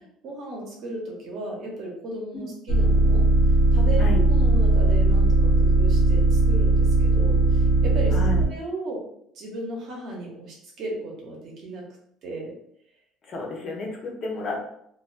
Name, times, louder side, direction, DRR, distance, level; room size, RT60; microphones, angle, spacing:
voice 1, 0.2-3.2 3.7-8.2 8.5-9.0 9.3-11.8 12.2-12.5, right 1 dB, 50° right, -2 dB, 0.7 m, -35 dB
sound 1, 2.7-8.5, right 2 dB, 75° left, 0.7 m, -19 dB
voice 2, 8.1-8.5 13.2-14.6, left 2 dB, 35° left, 0 dB, 0.6 m, -32 dB
2.3 x 2.2 x 2.4 m, 0.71 s
cardioid pair, 155°, 0 cm